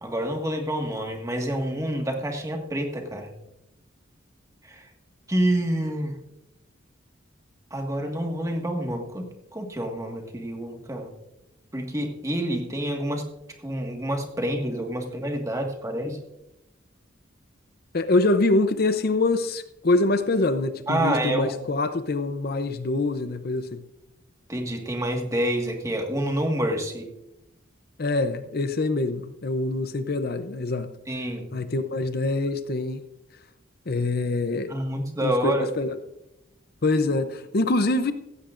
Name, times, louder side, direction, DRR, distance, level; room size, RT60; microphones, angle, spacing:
voice 1, 0.0-3.3 4.6-4.9 5.3-6.2 7.7-11.1 11.7-13.2 13.6-16.2 20.9-21.5 24.5-27.1 31.1-31.5 34.7-35.7, right 1 dB, 15° right, 2 dB, 1.7 m, -28 dB
voice 2, 17.9-23.8 28.0-30.9 31.5-33.0 33.9-34.7 35.2-36.0 36.8-38.1, left 2 dB, 50° left, 10 dB, 0.7 m, -25 dB
16.0 x 15.5 x 2.5 m, 0.89 s
head